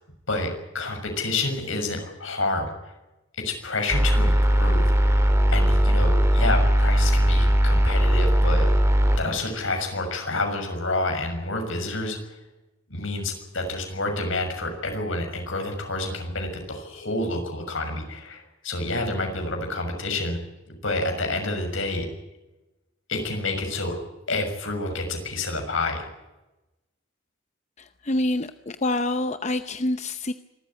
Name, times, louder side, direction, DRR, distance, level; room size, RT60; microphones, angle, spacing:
voice 1, 0.3-2.9 3.4-5.2 5.5-8.7 9.2-12.2 12.9-20.4 20.7-22.1 23.1-24.0 24.3-26.1, left 2 dB, 75° left, 5 dB, 6.4 m, -29 dB
sound 1, 3.9-9.2, equal, 15° right, 2.5 m, -19 dB
voice 2, 27.8-30.3, left 2 dB, 35° left, 10 dB, 0.7 m, -27 dB
26.0 x 13.5 x 9.9 m, 1.0 s
head